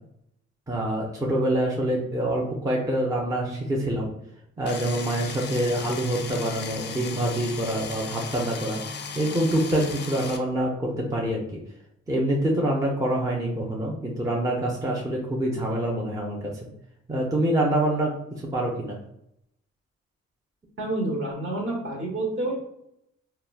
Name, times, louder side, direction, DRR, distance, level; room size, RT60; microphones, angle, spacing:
voice 1, 0.7-4.1 4.6-8.8 9.1-11.6 12.1-16.7 17.1-18.1 18.4-19.0, right 1 dB, 10° right, -3 dB, 0.6 m, -26 dB
sound 1, 4.7-10.4, left 5 dB, 35° left, 0.5 m, -36 dB
voice 2, 20.8-22.5, right 2 dB, 45° right, -1 dB, 1.1 m, -28 dB
3.0 x 2.2 x 2.3 m, 0.76 s
cardioid pair, 70°, 29 cm